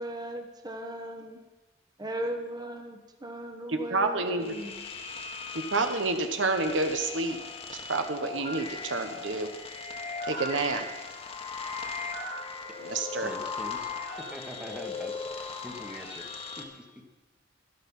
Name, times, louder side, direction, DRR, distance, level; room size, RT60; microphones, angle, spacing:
voice 1, 0.0-1.4 2.0-4.9, right 1 dB, 20° right, 4 dB, 1.2 m, -37 dB
voice 2, 3.7-4.5 5.7-7.4 7.7-9.5 10.2-10.9 12.8-13.3, right 3 dB, 70° right, 6 dB, 1.2 m, -29 dB
sound 1, 4.4-16.6, left 4 dB, 35° left, 1.5 m, -38 dB
voice 3, 13.2-13.9 14.3-16.3 16.6-16.9, equal, 5° right, 3 dB, 1.4 m, -43 dB
13.0 x 11.5 x 5.5 m, 1.2 s
head